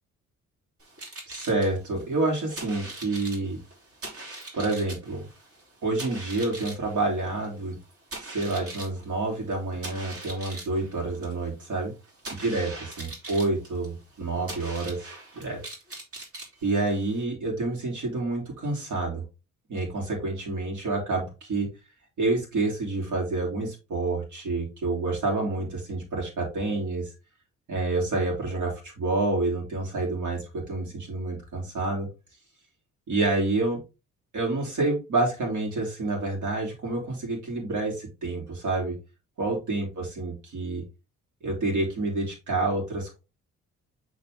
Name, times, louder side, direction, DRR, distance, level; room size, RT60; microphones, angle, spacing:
sound 1, 0.8-17.2, right 2 dB, 50° right, 3.2 m, -42 dB
voice 1, 1.3-3.6 4.5-5.3 5.8-7.8 8.2-11.9 12.4-15.6 16.6-19.2 19.7-21.7 22.2-27.1 27.7-32.1 33.1-33.8 34.3-38.9 39.4-40.8 41.4-43.2, right 2 dB, 75° right, -1 dB, 2.9 m, -28 dB
7.1 x 4.1 x 3.5 m, 0.28 s
cardioid pair, 90°, 30 cm